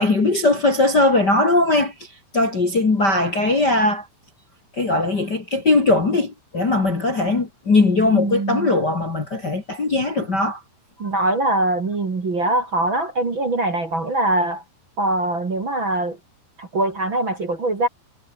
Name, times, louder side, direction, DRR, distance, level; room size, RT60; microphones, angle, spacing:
voice 1, 0.0-1.9 2.3-4.1 4.8-10.6 11.0-11.1, left 2 dB, 30° left, 2.6 m, -19 dB
voice 2, 8.1-8.7 11.0-14.6 15.0-16.2 16.6-17.9, right 2 dB, 30° right, 3.0 m, -22 dB
omnidirectional pair, 4.9 m